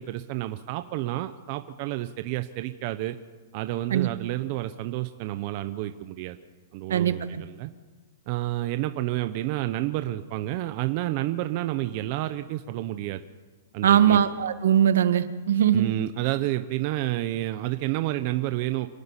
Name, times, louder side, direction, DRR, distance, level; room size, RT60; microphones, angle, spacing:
voice 1, 0.0-3.2 3.5-6.4 6.7-7.7 8.3-13.2 13.7-14.2 15.7-18.9, right 15 dB, 30° right, 10 dB, 0.7 m, -30 dB
voice 2, 6.9-7.4 13.8-15.9, right 9 dB, 65° right, 11 dB, 1.5 m, -21 dB
26.0 x 12.5 x 9.8 m, 1.4 s
hypercardioid pair, 175°, 0 cm